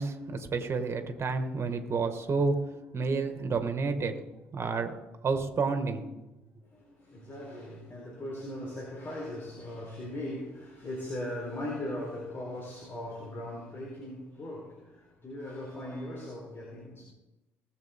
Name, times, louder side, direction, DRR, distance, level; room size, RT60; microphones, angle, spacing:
voice 1, 0.0-2.6 2.9-4.1 4.5-4.9 5.2-6.0, right 4 dB, 40° right, 2.2 m, -30 dB
voice 2, 6.6-17.0, left 1 dB, 35° left, 4.3 m, -39 dB
20.5 x 7.6 x 3.9 m
hypercardioid pair, 55°, 7 cm